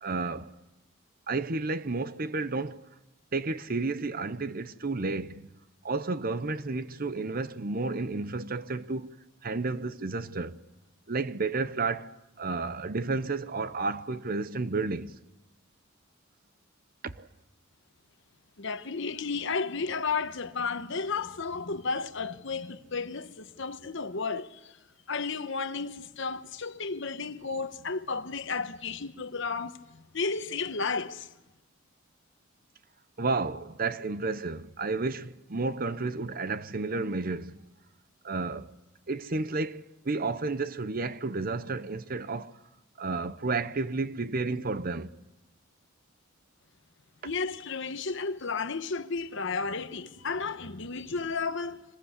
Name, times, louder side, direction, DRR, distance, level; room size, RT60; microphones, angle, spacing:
voice 1, 0.0-0.5 1.3-2.8 3.3-5.4 5.8-9.1 9.4-10.6 11.1-15.1 17.0-17.3 33.2-37.6 38.2-38.7 39.1-42.6 43.0-45.1, right 3 dB, 45° right, 0.9 m, -31 dB
voice 2, 18.6-24.8 25.1-31.3 47.2-51.8, left 4 dB, 65° left, 1.2 m, -33 dB
26.0 x 21.0 x 8.2 m
head